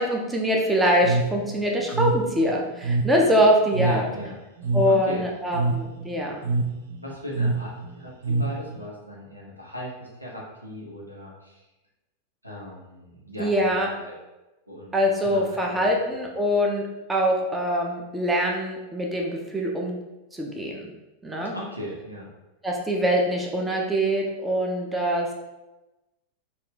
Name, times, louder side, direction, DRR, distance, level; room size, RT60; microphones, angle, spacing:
voice 1, 0.0-4.1 4.7-6.4 13.4-13.9 14.9-16.8 17.1-20.0 20.3-20.9 21.2-21.5 22.6-25.3, equal, 10° right, 0 dB, 0.6 m, -23 dB
sound 1, 1.0-8.9, right 3 dB, 55° right, 0.4 m, -27 dB
voice 2, 3.8-4.4 4.8-5.2 7.0-11.6 12.4-14.2 14.7-16.3 21.5-22.3, equal, 85° right, -3 dB, 0.9 m, -38 dB
4.2 x 2.5 x 3.5 m, 1.0 s
figure-of-eight pair, 90°, 0 cm